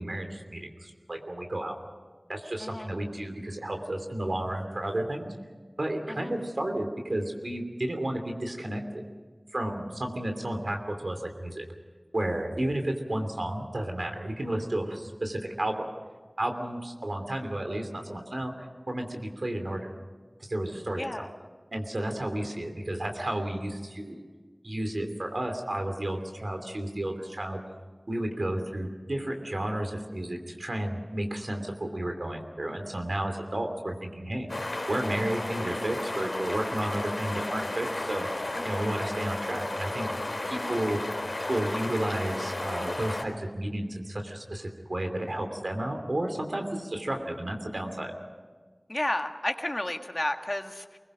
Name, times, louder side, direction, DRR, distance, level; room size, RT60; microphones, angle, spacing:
voice 1, 0.0-1.8 2.3-5.3 5.8-9.0 9.5-11.7 12.1-15.9 16.4-19.8 20.4-21.1 21.7-24.2 24.6-27.6 28.1-40.1 40.5-41.0 41.5-48.1, right 1 dB, 85° right, 5 dB, 2.8 m, -32 dB
voice 2, 21.0-21.3 38.6-38.9 48.9-51.0, left 1 dB, 45° left, 5 dB, 1.7 m, -32 dB
sound 1, 34.5-43.2, left 2 dB, 85° left, 3.5 m, -33 dB
24.5 x 20.5 x 6.3 m, 1.5 s
wide cardioid pair, 40°, 0 cm